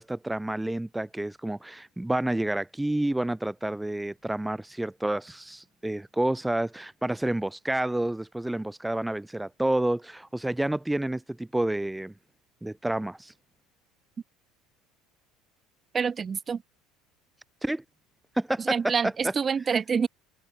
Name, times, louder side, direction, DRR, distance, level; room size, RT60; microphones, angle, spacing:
voice 1, 0.0-12.1 12.6-13.3 17.6-17.8 18.4-18.9, right 1 dB, 5° right, 6.0 m, -29 dB
voice 2, 15.9-16.6 18.6-20.1, right 6 dB, 30° right, 5.6 m, -27 dB
figure-of-eight pair, 65°, 0 cm